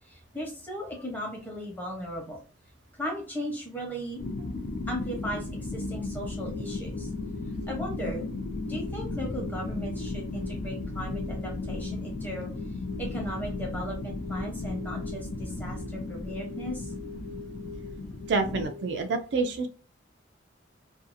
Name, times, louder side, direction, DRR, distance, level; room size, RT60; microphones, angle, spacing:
voice 1, 0.1-2.4 3.0-4.2 4.9-7.1 7.7-8.2 8.6-12.5 13.0-16.9, equal, 10° left, -1 dB, 0.8 m, -37 dB
sound 1, 4.2-18.6, left 2 dB, 45° left, 0.3 m, -35 dB
sound 2, 6.3-19.0, left 4 dB, 85° left, 1.0 m, -46 dB
voice 2, 18.3-19.7, right 3 dB, 65° right, 6 dB, 0.4 m, -27 dB
2.6 x 2.3 x 2.5 m, 0.37 s
head